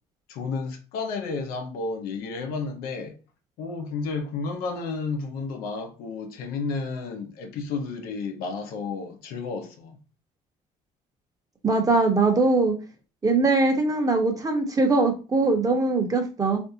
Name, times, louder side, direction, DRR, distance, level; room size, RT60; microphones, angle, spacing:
voice 1, 0.3-3.2 3.6-10.0, left 4 dB, 85° left, 0.7 m, -32 dB
voice 2, 11.6-12.7 13.2-16.6, right 3 dB, 25° right, 0.9 m, -21 dB
3.5 x 2.6 x 2.7 m
cardioid pair, 110°, 15 cm